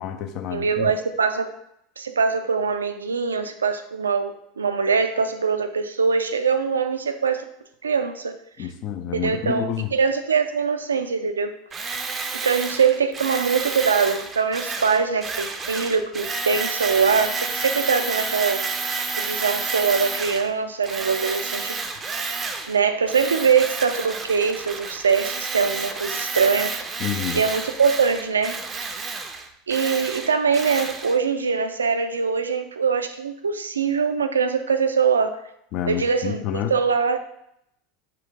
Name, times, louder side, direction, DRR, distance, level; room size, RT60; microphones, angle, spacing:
voice 1, 0.0-0.9 8.6-9.9 27.0-27.4 35.7-36.7, left 9 dB, 45° left, 6 dB, 0.5 m, -28 dB
voice 2, 0.5-1.5 2.0-7.5 7.8-8.4 9.1-11.6 12.4-18.7 19.2-21.8 22.7-26.8 27.3-28.6 29.7-35.4 35.9-37.2, right 5 dB, 80° right, 8 dB, 0.4 m, -23 dB
Tools, 11.7-20.5 20.8-22.8 23.1-31.2, right 4 dB, 25° right, 0.5 m, -30 dB
4.5 x 2.5 x 4.8 m, 0.75 s
figure-of-eight pair, 80°, 0 cm